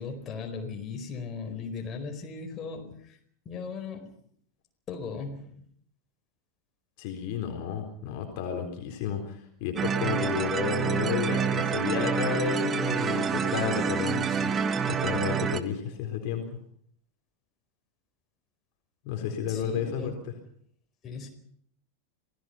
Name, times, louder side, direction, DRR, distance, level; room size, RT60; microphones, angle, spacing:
voice 1, 0.0-3.2 3.4-4.1 4.9-5.6 19.5-20.3 21.0-21.3, left 5 dB, 25° left, 3 dB, 4.7 m, -37 dB
voice 2, 7.0-16.4 19.0-20.1, left 8 dB, 45° left, 3 dB, 4.1 m, -32 dB
sound 1, 9.8-15.6, right 6 dB, 25° right, 1.3 m, -27 dB
27.5 x 18.5 x 5.8 m, 0.65 s
figure-of-eight pair, 90°, 0 cm